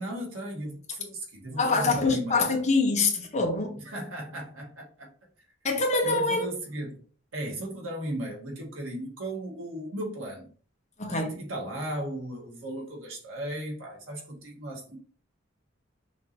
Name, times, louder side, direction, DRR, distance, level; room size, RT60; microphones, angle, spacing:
voice 1, 0.0-2.5 3.8-5.1 6.0-7.0 7.3-10.5 11.1-15.0, right 1 dB, 85° right, 1.6 m, -36 dB
voice 2, 1.6-3.8 5.6-6.4 11.0-11.3, left 3 dB, 35° left, 1.1 m, -25 dB
5.8 x 2.8 x 2.8 m
head